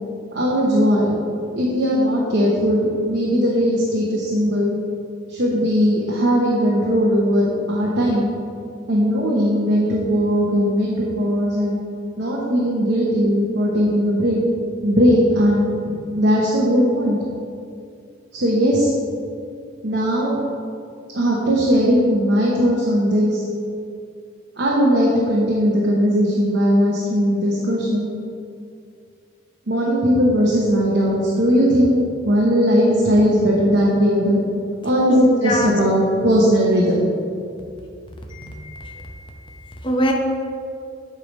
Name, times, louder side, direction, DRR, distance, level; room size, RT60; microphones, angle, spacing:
voice 1, 0.3-1.2 1.6-4.8 5.3-8.3 8.9-11.8 12.2-14.4 14.8-17.2 18.3-18.9 19.8-20.4 21.1-23.4 24.6-28.1 29.7-34.4 34.8-37.1, equal, 65° right, -4 dB, 0.9 m, -18 dB
voice 2, 35.1-35.7 38.3-40.1, equal, 25° left, 1 dB, 0.7 m, -26 dB
8.3 x 3.3 x 5.2 m, 2.4 s
head